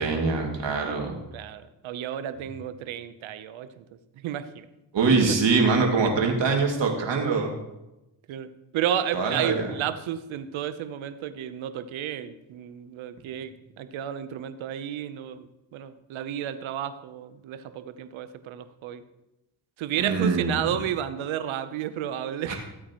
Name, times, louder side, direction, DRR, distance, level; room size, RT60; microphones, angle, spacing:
voice 1, 0.0-1.2 4.9-7.5 9.1-9.7 20.0-20.7 22.5-22.6, right 4 dB, 65° right, 1 dB, 2.4 m, -23 dB
voice 2, 1.3-3.8 4.2-4.7 6.0-6.1 8.3-15.5 15.7-19.0 19.8-22.5, right 10 dB, 85° right, 12 dB, 0.8 m, -32 dB
15.5 x 8.7 x 3.0 m, 0.95 s
supercardioid pair, 45°, 46 cm